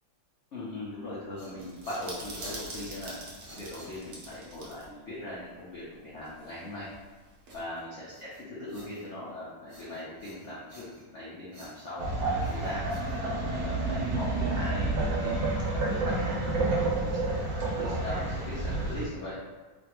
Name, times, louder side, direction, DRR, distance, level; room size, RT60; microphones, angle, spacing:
voice 1, 0.5-3.1 3.5-6.9 7.5-10.9 11.1-12.9 13.3-15.3 15.7-17.4 17.7-19.3, left 1 dB, 80° left, -8 dB, 0.6 m, -40 dB
sound 1, 1.0-4.4 7.5-9.3 9.7-11.2 11.5-13.8, equal, 35° right, 1.1 m, -51 dB
sound 2, 1.6-4.9 5.1-5.2 6.2-7.6, right 1 dB, 60° right, 0.9 m, -44 dB
sound 3, 12.0-19.0, right 2 dB, 85° right, 1.4 m, -29 dB
3.1 x 2.5 x 2.9 m, 1.3 s
omnidirectional pair, 2.1 m